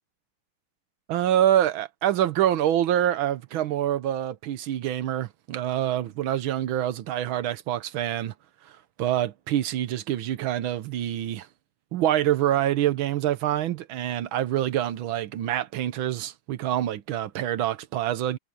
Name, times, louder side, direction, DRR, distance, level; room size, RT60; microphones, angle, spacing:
voice 1, 1.1-8.3 9.0-11.5 11.9-18.4, right 11 dB, 80° right, 1.7 m, -26 dB
omnidirectional pair, 2.2 m